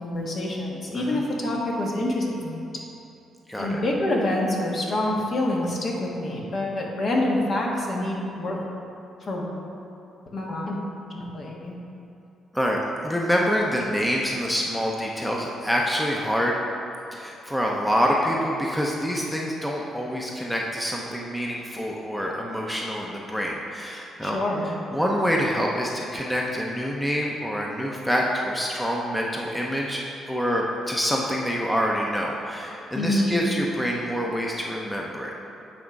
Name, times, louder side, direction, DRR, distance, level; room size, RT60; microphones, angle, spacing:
voice 1, 0.0-2.8 3.6-8.6 9.2-9.5 10.3-10.8 11.1-11.8 24.2-24.7 32.9-33.4, left 1 dB, 50° left, -2 dB, 1.3 m, -26 dB
voice 2, 3.5-3.8 12.5-16.6 17.1-24.4 24.9-30.0 30.3-35.3, equal, 5° left, -2 dB, 0.7 m, -26 dB
8.5 x 3.6 x 5.2 m, 2.8 s
cardioid pair, 90°, 0 cm